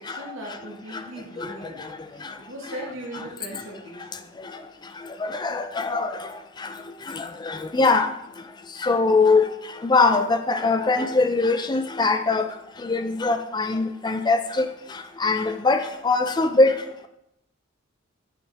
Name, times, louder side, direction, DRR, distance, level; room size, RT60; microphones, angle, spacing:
voice 1, 0.0-4.3, right 1 dB, 80° right, 1.7 m, -39 dB
voice 2, 5.4-6.1 7.7-8.1 8.8-9.4 9.8-12.4 12.8-14.6 15.2-16.7, left 3 dB, 20° left, 0.4 m, -21 dB
7.7 x 5.4 x 3.5 m
head